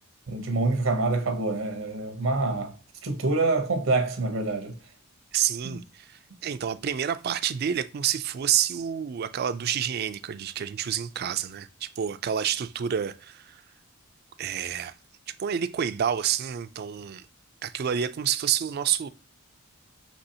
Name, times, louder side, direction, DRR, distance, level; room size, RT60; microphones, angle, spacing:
voice 1, 0.3-2.8 3.0-4.8 5.6-5.8, right 3 dB, 80° right, 0.7 m, -26 dB
voice 2, 5.3-13.6 14.4-14.9 15.4-17.2 17.6-19.1, right 9 dB, 50° right, 0.3 m, -28 dB
5.4 x 2.9 x 2.8 m
head